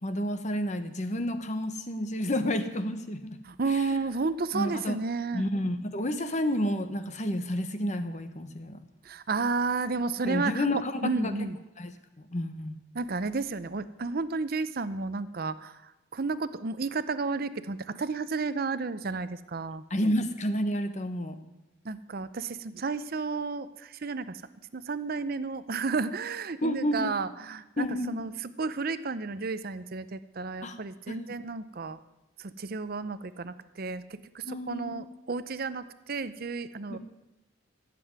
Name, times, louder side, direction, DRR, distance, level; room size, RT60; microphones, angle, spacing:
voice 1, 0.0-3.4 3.7-4.0 4.5-5.0 5.3-8.8 10.2-11.5 11.8-11.9 12.2-12.8 19.9-21.4 26.6-27.1 27.8-28.2 30.6-30.8 31.1-31.2 34.4-35.1 36.9-37.0, left 1 dB, 40° left, 9 dB, 1.1 m, -30 dB
voice 2, 3.4-5.5 9.1-10.6 11.0-11.6 12.9-15.7 16.1-19.8 21.8-24.4 24.7-28.3 28.6-32.0 32.4-34.0 34.3-37.0, right 4 dB, 50° right, 13 dB, 0.6 m, -32 dB
14.5 x 7.7 x 9.5 m, 0.98 s
head